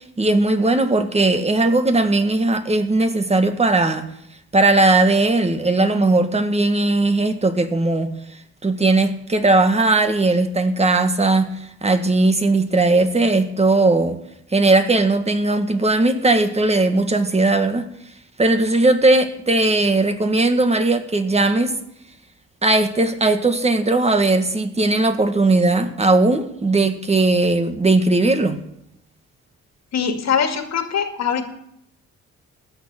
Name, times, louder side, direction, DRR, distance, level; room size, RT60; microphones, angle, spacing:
voice 1, 0.2-4.1 4.5-8.1 8.6-11.5 11.8-14.2 14.5-17.9 18.4-21.7 22.6-28.6, right 2 dB, 20° right, 8 dB, 1.7 m, -18 dB
voice 2, 29.9-31.5, left 7 dB, 60° left, 6 dB, 2.1 m, -22 dB
15.0 x 6.8 x 9.3 m, 0.76 s
cardioid pair, 90°, 30 cm